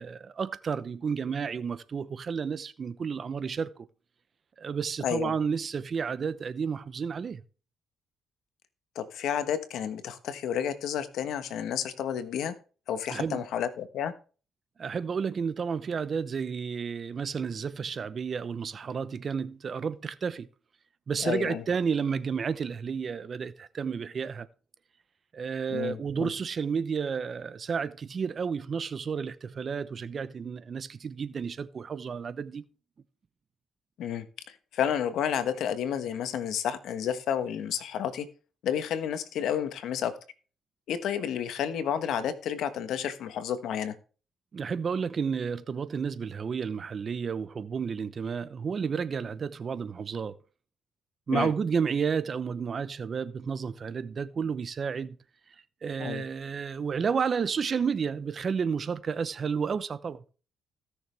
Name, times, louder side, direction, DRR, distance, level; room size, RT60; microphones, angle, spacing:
voice 1, 0.0-3.9 4.6-7.4 13.1-13.4 14.8-20.5 21.1-24.5 25.3-32.6 44.5-50.4 51.3-55.2 55.8-60.2, right 6 dB, 45° right, 0.8 m, -31 dB
voice 2, 5.0-5.4 8.9-12.5 12.9-14.1 21.2-21.6 25.7-26.3 34.0-38.3 38.6-40.1 40.9-43.9 51.3-51.5 56.0-56.2, left 9 dB, 75° left, 1.2 m, -31 dB
17.0 x 6.5 x 3.4 m
cardioid pair, 90°, 0 cm